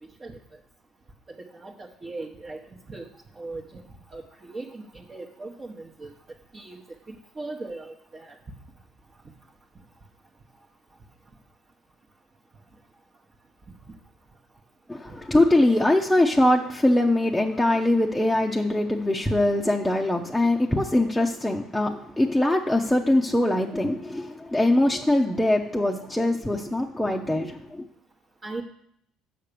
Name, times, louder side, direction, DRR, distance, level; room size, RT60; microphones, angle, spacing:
voice 1, 0.0-0.4 1.3-3.1 3.3-6.1 6.5-6.8 7.1-8.4 28.4-28.6, right 3 dB, 30° right, -2 dB, 1.1 m, -39 dB
voice 2, 14.9-27.8, left 1 dB, 5° left, -1 dB, 0.8 m, -22 dB
7.7 x 5.8 x 6.8 m, 0.73 s
supercardioid pair, 90°, 0 cm